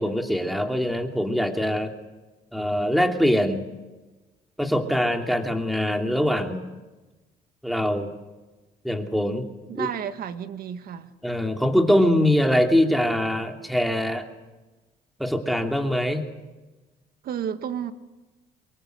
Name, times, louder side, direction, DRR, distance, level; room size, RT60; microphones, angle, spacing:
voice 1, 0.0-1.9 2.5-3.7 4.6-6.6 7.6-8.1 8.8-9.5 9.7-9.9 11.2-14.3 15.2-16.2, equal, ahead, 2.9 m, -23 dB
voice 2, 9.7-11.1 17.2-17.9, right 9 dB, 60° right, 1.7 m, -31 dB
24.5 x 22.0 x 8.0 m
cardioid pair, 110°, 17 cm